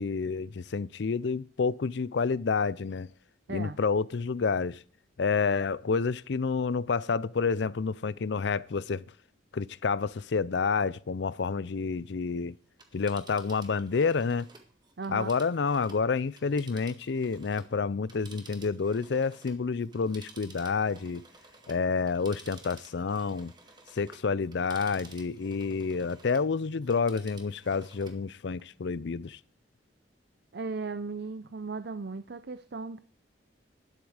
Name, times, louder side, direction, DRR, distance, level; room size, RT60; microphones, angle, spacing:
voice 1, 0.0-3.1 3.5-4.8 5.2-9.0 9.5-12.5 12.9-14.5 15.1-21.2 21.7-23.5 23.9-29.4, left 5 dB, 65° left, 0.5 m, -29 dB
Telephone, 12.7-17.7 18.0-26.5 26.8-28.2 28.6-28.7, right 3 dB, 20° right, 1.6 m, -53 dB
voice 2, 15.0-15.3 30.5-33.0, right 4 dB, 60° right, 0.5 m, -36 dB
12.0 x 10.5 x 4.9 m
head